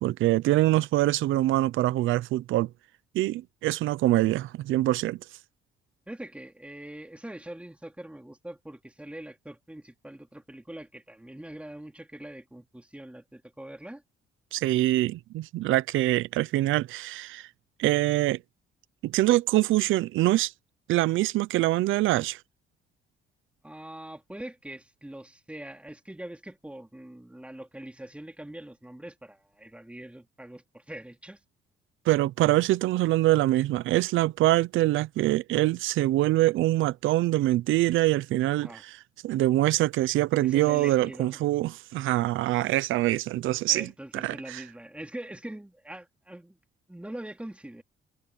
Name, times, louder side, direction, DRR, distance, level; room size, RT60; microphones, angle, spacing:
voice 1, 0.0-2.7 3.1-5.2 14.5-17.5 17.8-18.4 19.0-20.5 20.9-22.4 32.1-38.7 39.2-44.6, right 16 dB, 85° right, 0.6 m, -24 dB
voice 2, 6.1-14.0 23.6-31.4 38.6-38.8 40.4-41.4 43.7-46.6 46.9-47.8, right 1 dB, 5° right, 3.2 m, -43 dB
cardioid pair, 90°, 20 cm